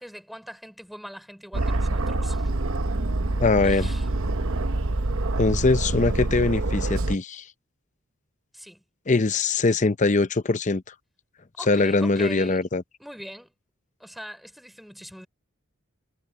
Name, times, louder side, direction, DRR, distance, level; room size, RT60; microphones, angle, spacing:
voice 1, 0.0-2.5 3.6-4.1 8.5-8.8 11.6-12.6 13.0-13.5 14.0-15.3, equal, ahead, 3.7 m, -41 dB
Aircraft, 1.5-7.2, right 2 dB, 65° right, 1.0 m, -26 dB
voice 2, 3.4-3.9 5.4-7.5 9.1-10.9 11.7-12.8, left 3 dB, 35° left, 0.6 m, -22 dB
head